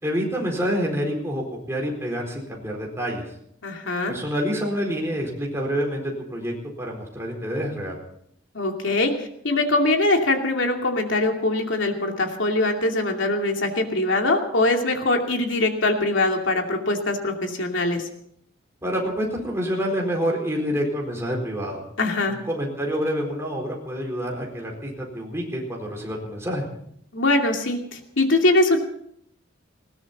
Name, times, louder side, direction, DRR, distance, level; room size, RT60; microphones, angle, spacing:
voice 1, 0.0-3.3 4.1-8.0 18.8-21.8 22.3-26.7, equal, 15° right, -1 dB, 4.2 m, -27 dB
voice 2, 3.6-4.1 8.5-18.1 22.0-22.3 27.1-28.8, left 2 dB, 75° left, 3 dB, 2.6 m, -22 dB
20.0 x 16.5 x 4.2 m, 0.69 s
head